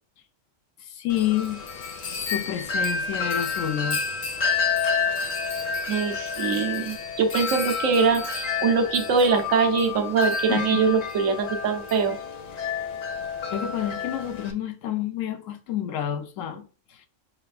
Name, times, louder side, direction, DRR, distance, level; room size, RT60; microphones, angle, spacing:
voice 1, 0.8-1.6 2.2-4.0 10.5-10.8 12.5-12.8 13.5-16.6 16.9-17.1, left 11 dB, 80° left, 1.0 m, -29 dB
Wind chime, 1.1-14.5, left 5 dB, 55° left, 0.5 m, -29 dB
voice 2, 5.9-12.2, right 5 dB, 85° right, 1.1 m, -23 dB
5.7 x 3.3 x 2.3 m
omnidirectional pair, 1.3 m